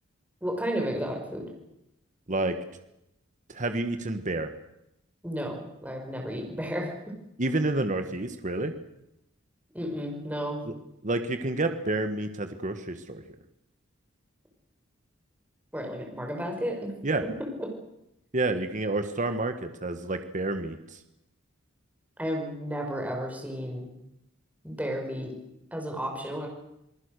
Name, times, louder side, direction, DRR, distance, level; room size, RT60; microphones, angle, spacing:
voice 1, 0.4-1.5 5.2-6.9 9.7-10.6 15.7-16.9 22.2-23.9 24.6-25.3 25.7-26.5, equal, 10° right, 1 dB, 5.4 m, -32 dB
voice 2, 3.5-4.5 7.4-8.7 10.7-10.8 11.0-13.2 17.0-17.2 18.3-21.0, right 2 dB, 40° right, 8 dB, 1.5 m, -29 dB
28.5 x 20.0 x 6.7 m, 0.83 s
head